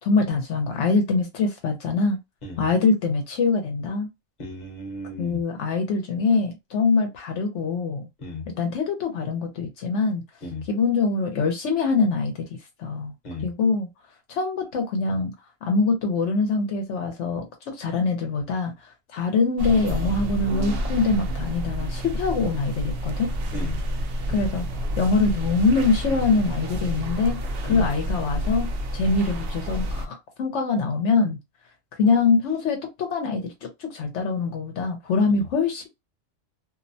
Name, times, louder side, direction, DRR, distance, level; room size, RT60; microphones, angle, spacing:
voice 1, 0.0-2.2 2.6-4.1 5.2-8.1 8.5-10.2 10.7-12.5 12.8-13.1 13.4-13.9 14.3-15.3 15.6-23.3 24.3-24.7 25.0-31.4 31.9-35.9, left 4 dB, 75° left, 0.9 m, -24 dB
voice 2, 4.4-5.4 8.2-8.4 10.4-10.6 13.2-13.5 23.5-23.8 27.7-27.8 35.3-35.5, left 2 dB, 40° left, 0.9 m, -34 dB
sound 1, 19.6-30.1, equal, 60° right, 0.7 m, -29 dB
2.6 x 2.0 x 2.6 m
omnidirectional pair, 1.3 m